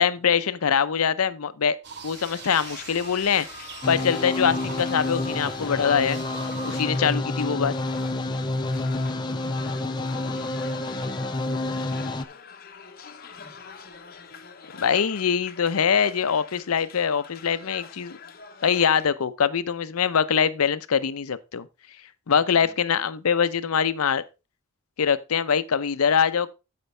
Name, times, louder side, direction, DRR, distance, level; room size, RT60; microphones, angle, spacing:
voice 1, 0.0-1.8 2.0-3.5 3.9-6.2 6.7-7.7 14.8-18.2 18.6-21.7 22.3-24.2 25.0-26.5, left 7 dB, 90° left, 0.6 m, -23 dB
sound 1, 1.8-6.9, right 6 dB, 50° right, 0.9 m, -43 dB
sound 2, 2.0-19.1, left 5 dB, 45° left, 0.8 m, -43 dB
sound 3, 3.8-12.2, left 2 dB, 20° left, 0.5 m, -29 dB
voice 2, 9.1-12.3 13.4-13.6 22.3-22.8, equal, 5° left, 2.5 m, -52 dB
13.5 x 5.2 x 3.2 m
head